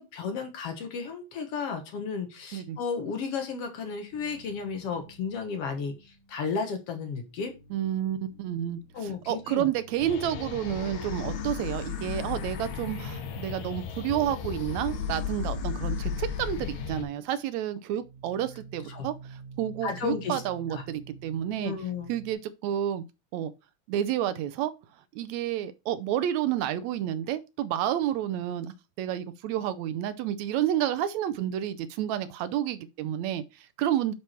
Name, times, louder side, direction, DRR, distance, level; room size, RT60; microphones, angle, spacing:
voice 1, 0.0-7.5 8.9-9.7 18.9-19.1 19.8-20.4 20.7-20.8 21.6-22.1, left 5 dB, 60° left, 2.1 m, -33 dB
sound 1, 4.1-6.9 7.2-22.3, right 4 dB, 35° right, 1.5 m, -51 dB
voice 2, 7.7-21.7 22.1-23.0 23.3-23.5 23.9-24.7 25.1-34.1, right 11 dB, 80° right, 1.9 m, -30 dB
sound 2, 10.0-17.0, left 7 dB, 85° left, 2.6 m, -34 dB
9.5 x 4.6 x 4.4 m
omnidirectional pair, 3.3 m